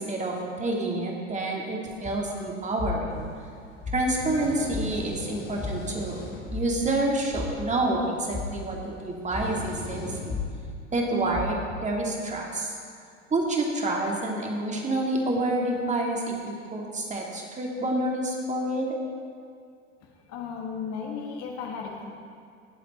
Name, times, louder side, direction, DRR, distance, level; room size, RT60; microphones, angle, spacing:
voice 1, 0.0-3.2 3.9-6.2 6.5-10.4 10.9-12.7 13.3-19.0, right 2 dB, 20° right, -1 dB, 2.2 m, -28 dB
sound 1, 2.0-2.2 2.8-3.2 3.8-4.3 4.7-5.1 5.6-6.0 6.4-6.9 7.3-8.0 8.3-8.7 9.3-9.7 10.3-10.7 11.3-11.8, left 5 dB, 20° left, 3.3 m, -33 dB
sound 2, 3.1-10.6, left 2 dB, 65° left, 2.8 m, -42 dB
voice 2, 20.0-22.1, left 5 dB, 45° left, 1 dB, 1.6 m, -35 dB
17.5 x 7.4 x 4.2 m, 2.3 s
figure-of-eight pair, 75°, 38 cm